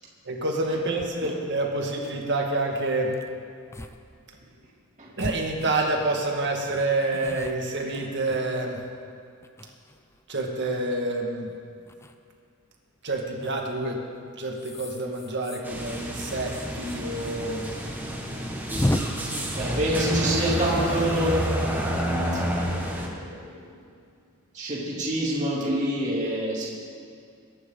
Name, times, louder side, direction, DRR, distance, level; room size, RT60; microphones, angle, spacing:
voice 1, 0.3-3.2 5.2-8.8 10.3-11.5 13.0-14.0 14.4-17.7, right 2 dB, 55° right, 1 dB, 1.9 m, -28 dB
sound 1, 1.0-1.1 1.6-1.7 1.9-2.2 3.1-3.3 3.7-4.0 4.3-4.4 5.2-6.1 6.7-8.9 9.4-10.2 11.9-12.1 13.4-13.8 14.5-17.3 17.6-17.7 18.0-18.1 18.7-19.0, left 1 dB, 10° left, 0.5 m, -34 dB
sound 2, 15.6-23.1, equal, 10° right, 1.5 m, -29 dB
voice 2, 19.5-21.5 22.5-23.6 24.5-26.6, right 1 dB, 35° right, -5 dB, 2.8 m, -27 dB
22.0 x 11.0 x 3.9 m, 2.3 s
head